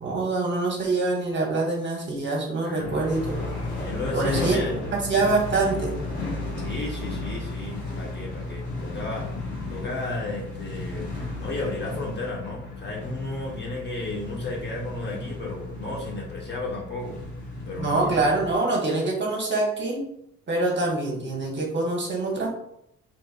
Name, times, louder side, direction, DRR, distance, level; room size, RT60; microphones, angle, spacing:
voice 1, 0.0-3.4 4.1-4.6 4.9-5.9 17.8-20.0 20.5-22.5, right 2 dB, 40° right, -1 dB, 0.8 m, -25 dB
voice 2, 2.6-3.1 3.8-4.9 6.6-9.3 9.7-18.5, left 2 dB, 35° left, -2 dB, 0.7 m, -34 dB
sound 1, 2.8-18.5, left 2 dB, 80° left, 1.2 m, -34 dB
3.3 x 3.0 x 2.4 m, 0.78 s
cardioid pair, 90°, 30 cm